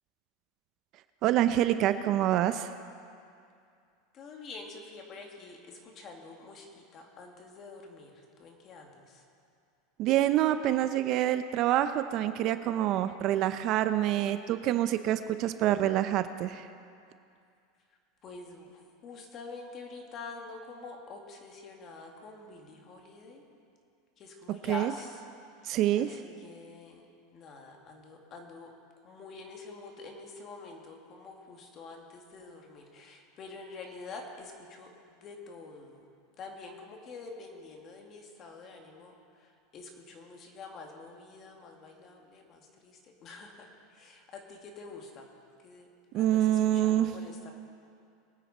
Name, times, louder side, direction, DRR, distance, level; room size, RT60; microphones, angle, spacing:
voice 1, 1.2-2.7 10.0-16.6 24.7-24.9 25.7-26.1 46.1-47.1, right 12 dB, 45° right, 11 dB, 0.5 m, -26 dB
voice 2, 4.1-9.2 17.9-23.4 24.2-25.3 25.6-27.0 27.3-28.7 29.0-36.1 36.4-45.3 45.6-45.9 46.1-47.5, left 3 dB, 35° left, 1 dB, 2.3 m, -47 dB
23.5 x 9.2 x 4.3 m, 2.4 s
supercardioid pair, 135°, 0 cm